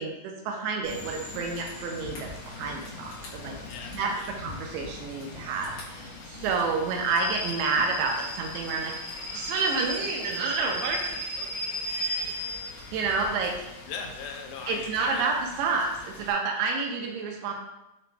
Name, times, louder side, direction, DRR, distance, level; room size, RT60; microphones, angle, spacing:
voice 1, 0.0-3.5 3.9-8.9 9.3-11.2 12.9-13.6 14.7-17.5, right 4 dB, 85° right, 2 dB, 2.5 m, -29 dB
Rain / Train, 0.8-16.3, left 1 dB, 70° left, 2.5 m, -38 dB
voice 2, 3.6-4.4 11.7-12.3 13.9-15.3, left 5 dB, 85° left, 3 dB, 2.7 m, -40 dB
7.4 x 2.9 x 2.2 m, 0.94 s
omnidirectional pair, 4.8 m